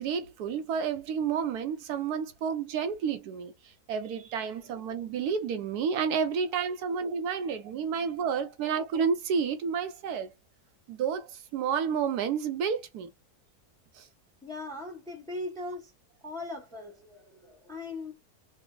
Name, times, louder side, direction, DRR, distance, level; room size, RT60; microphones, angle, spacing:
voice 1, 0.0-3.5 3.9-10.3 10.9-13.1 14.0-14.1, right 6 dB, 80° right, 1.2 m, -30 dB
voice 2, 14.4-15.9 16.2-18.1, left 2 dB, 5° left, 0.6 m, -40 dB
3.3 x 2.0 x 3.7 m
omnidirectional pair, 1.6 m